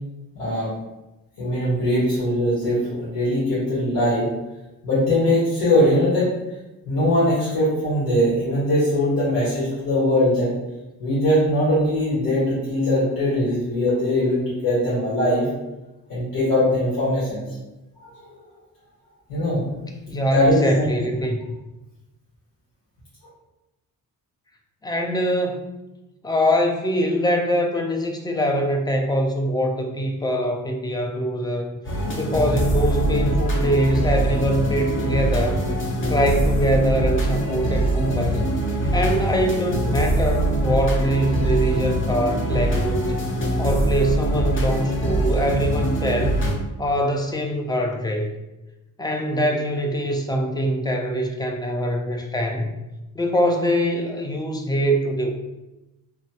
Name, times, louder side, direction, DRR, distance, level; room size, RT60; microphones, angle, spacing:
voice 1, 0.3-0.7 1.4-4.3 4.8-6.3 6.8-10.5 11.0-15.5 16.1-17.4 18.0-18.2 19.3-19.9 20.3-20.9, left 1 dB, 80° left, -10 dB, 1.5 m, -21 dB
voice 2, 20.1-21.4 24.8-25.6 26.2-31.8 32.1-35.6 36.1-38.5 38.9-43.1 43.6-46.4 46.8-48.3 49.0-52.7 53.1-55.3, equal, 10° left, 2 dB, 0.3 m, -23 dB
sound 1, 31.8-46.5, right 1 dB, 35° left, 0.7 m, -23 dB
3.1 x 2.2 x 2.8 m, 1.0 s
cardioid pair, 105°, 35 cm